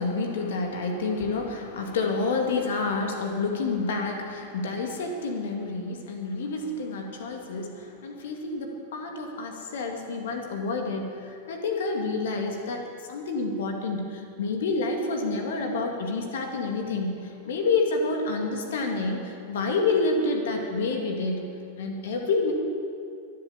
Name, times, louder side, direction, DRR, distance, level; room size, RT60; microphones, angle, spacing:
voice 1, 0.0-12.8 13.1-21.5 21.8-22.5, left 3 dB, 60° left, 3 dB, 2.2 m, -28 dB
23.5 x 8.2 x 7.2 m, 2.4 s
figure-of-eight pair, 90°, 0 cm